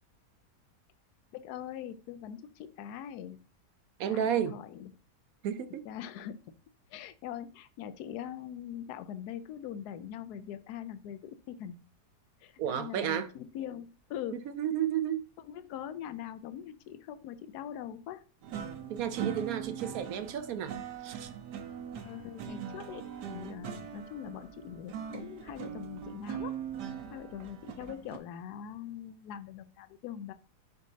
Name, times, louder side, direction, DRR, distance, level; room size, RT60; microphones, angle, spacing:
voice 1, 1.3-3.4 4.1-4.9 5.8-6.4 6.9-11.8 12.4-14.4 15.4-18.2 21.9-26.6 27.1-30.3, left 9 dB, 75° left, 1.1 m, -42 dB
voice 2, 4.0-4.6 5.4-5.8 12.6-13.3 14.5-15.2 18.9-20.8 21.0-21.3, right 9 dB, 70° right, 1.0 m, -32 dB
sound 1, 18.4-28.2, right 8 dB, 90° right, 1.4 m, -41 dB
11.5 x 4.1 x 2.7 m
omnidirectional pair, 1.7 m